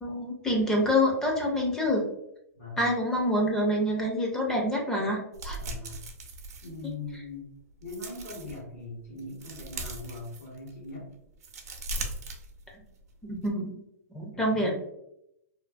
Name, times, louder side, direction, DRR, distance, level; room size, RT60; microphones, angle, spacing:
voice 1, 0.0-2.0 2.8-5.6 13.2-13.8 14.1-14.7, left 1 dB, 5° left, -1 dB, 0.5 m, -27 dB
sound 1, 5.3-7.3 7.7-8.6 9.0-10.8 11.2-13.0 13.3-13.5, right 2 dB, 70° right, 0.6 m, -39 dB
voice 2, 5.6-6.0 6.6-7.5 7.8-11.1 14.3-14.7, left 3 dB, 65° left, -8 dB, 1.1 m, -41 dB
2.5 x 2.5 x 2.4 m, 0.81 s
hypercardioid pair, 150°, 9 cm